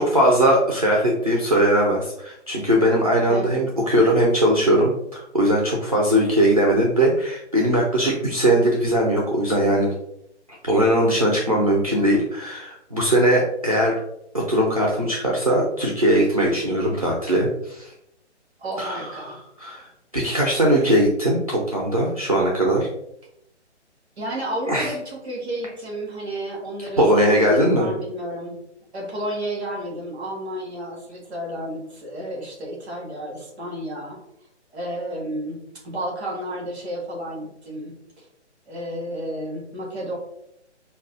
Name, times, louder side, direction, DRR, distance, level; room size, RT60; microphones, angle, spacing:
voice 1, 0.0-9.9 10.5-13.9 14.3-17.9 18.8-19.1 19.6-22.9 24.7-24.9 27.0-27.9, right 1 dB, 35° right, -2 dB, 0.4 m, -20 dB
voice 2, 3.3-3.6 18.6-19.4 24.2-28.6 28.9-34.2 34.7-38.2 38.7-40.2, right 1 dB, 5° right, -3 dB, 0.7 m, -31 dB
4.9 x 2.3 x 2.4 m, 0.77 s
hypercardioid pair, 175°, 35 cm